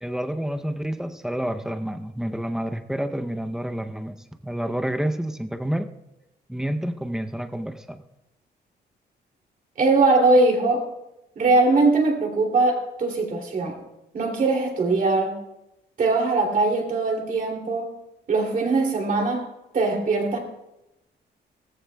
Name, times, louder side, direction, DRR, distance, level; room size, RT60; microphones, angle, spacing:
voice 1, 0.0-4.2 4.4-5.9 6.5-8.0, right 1 dB, 5° right, 6 dB, 0.6 m, -29 dB
voice 2, 9.8-10.8 11.4-13.8 14.1-15.4 16.0-17.9 18.3-19.4 19.7-20.4, right 3 dB, 50° right, 0 dB, 2.7 m, -21 dB
18.0 x 14.5 x 2.3 m, 0.90 s
wide cardioid pair, 155°, 18 cm